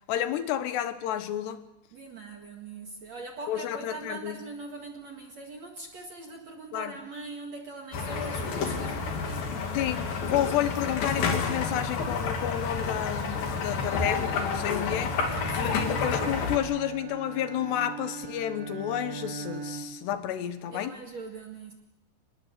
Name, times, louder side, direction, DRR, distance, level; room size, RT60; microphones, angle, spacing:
voice 1, 0.1-1.6 3.5-4.4 6.7-6.9 9.7-21.0, left 11 dB, 75° left, 10 dB, 3.3 m, -31 dB
voice 2, 1.9-9.6 15.5-16.0 20.7-21.7, right 3 dB, 50° right, 2 dB, 2.5 m, -42 dB
sound 1, 7.9-16.6, left 4 dB, 60° left, 4.0 m, -30 dB
Bowed string instrument, 14.9-20.2, right 6 dB, 65° right, 1.6 m, -41 dB
26.0 x 21.0 x 6.7 m, 0.89 s
omnidirectional pair, 4.9 m